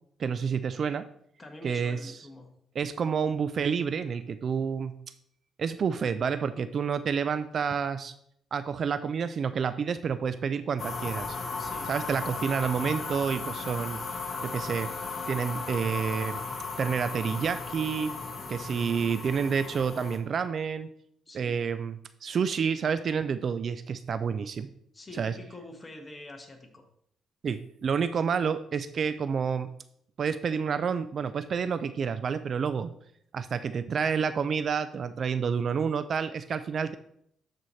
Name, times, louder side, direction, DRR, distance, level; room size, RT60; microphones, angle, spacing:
voice 1, 0.2-1.1 1.6-2.0 2.8-5.0 5.6-8.1 8.5-11.4 11.9-14.0 14.4-14.9 15.3-16.4 16.8-18.1 18.5-20.9 21.3-24.7 25.2-25.3 27.4-29.7 30.2-32.9 33.3-36.9, right 6 dB, 50° right, 12 dB, 0.4 m, -29 dB
voice 2, 1.4-2.5 11.6-11.9 21.3-21.6 24.9-26.9, left 2 dB, 25° left, 3 dB, 1.5 m, -46 dB
sound 1, 10.8-20.2, left 4 dB, 40° left, 1.3 m, -36 dB
12.5 x 4.2 x 3.1 m, 0.70 s
cardioid pair, 90°, 0 cm